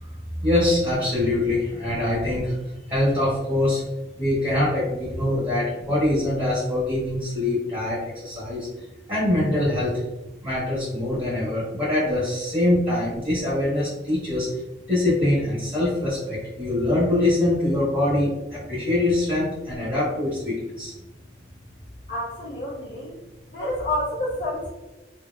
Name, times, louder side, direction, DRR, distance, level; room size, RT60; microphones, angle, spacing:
voice 1, 0.4-2.5 2.9-3.8 4.2-8.7 9.1-9.9 10.4-14.5 14.9-20.9, left 1 dB, 25° right, -11 dB, 1.2 m, -23 dB
voice 2, 22.1-23.2 23.5-24.7, left 1 dB, 45° left, -8 dB, 0.5 m, -29 dB
2.9 x 2.8 x 2.2 m, 1.0 s
head